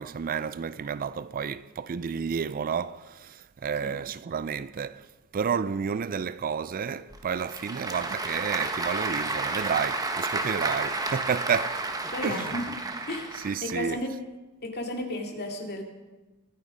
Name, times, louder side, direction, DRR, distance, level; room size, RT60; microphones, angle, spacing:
voice 1, 0.0-5.1 5.3-11.8 12.2-12.6 13.3-14.1, right 6 dB, 40° right, 0.4 m, -31 dB
Applause / Crowd, 7.1-13.9, right 2 dB, 15° right, 1.1 m, -31 dB
voice 2, 12.1-12.6 13.1-14.1 14.6-15.8, left 1 dB, 45° left, 2.4 m, -33 dB
23.0 x 9.3 x 5.1 m
head